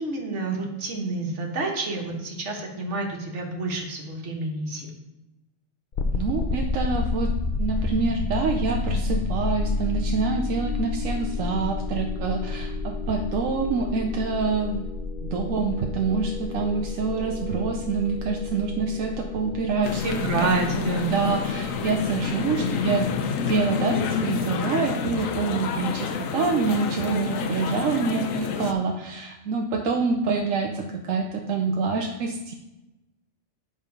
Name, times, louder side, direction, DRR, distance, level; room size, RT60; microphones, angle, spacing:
voice 1, 0.0-4.9 20.0-21.1, right 3 dB, 60° right, 1 dB, 1.6 m, -28 dB
sound 1, 5.9-22.9, left 3 dB, 50° left, 0.6 m, -30 dB
voice 2, 6.1-14.9 15.2-20.0 20.4-32.5, right 4 dB, 80° right, 3 dB, 1.0 m, -26 dB
sound 2, 19.8-28.7, left 6 dB, 80° left, 1.1 m, -28 dB
9.3 x 3.8 x 5.2 m, 1.0 s
omnidirectional pair, 1.4 m